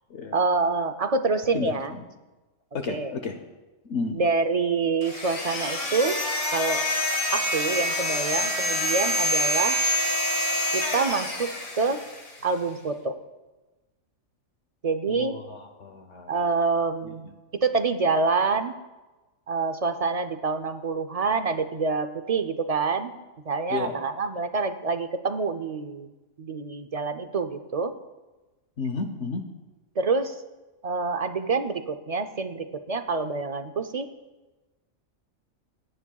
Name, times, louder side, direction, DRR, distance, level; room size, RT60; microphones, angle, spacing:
voice 1, 0.3-1.9 2.9-3.1 4.1-6.2 6.5-6.9 7.3-9.8 10.7-12.0 12.4-13.2 14.8-15.4 16.3-18.7 19.5-23.1 23.5-26.1 26.4-27.9 30.0-30.4 30.8-34.1, right 4 dB, 50° right, 9 dB, 0.4 m, -26 dB
voice 2, 1.5-2.0 2.7-3.4 3.9-4.2 15.1-16.4 17.0-17.3 23.7-24.0 28.8-29.4, left 4 dB, 65° left, 6 dB, 1.1 m, -32 dB
sound 1, 5.0-12.4, left 1 dB, 85° left, 2.5 m, -26 dB
28.0 x 10.0 x 2.3 m, 1.2 s
omnidirectional pair, 1.4 m